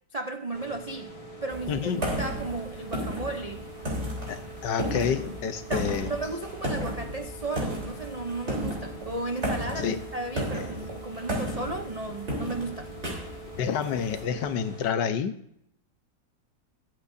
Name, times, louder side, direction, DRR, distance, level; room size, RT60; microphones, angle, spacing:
voice 1, 0.1-1.1 1.4-3.7 5.7-12.9, right 2 dB, 70° right, 4 dB, 0.3 m, -34 dB
sound 1, 0.5-14.9, right 2 dB, 20° left, 1.5 m, -44 dB
sound 2, 1.5-14.2, equal, 40° right, 3.9 m, -34 dB
voice 2, 1.7-2.1 4.3-6.1 9.8-10.0 10.5-10.7 13.6-15.3, left 7 dB, 85° left, 9 dB, 1.6 m, -29 dB
21.5 x 8.5 x 2.6 m, 0.73 s
omnidirectional pair, 1.8 m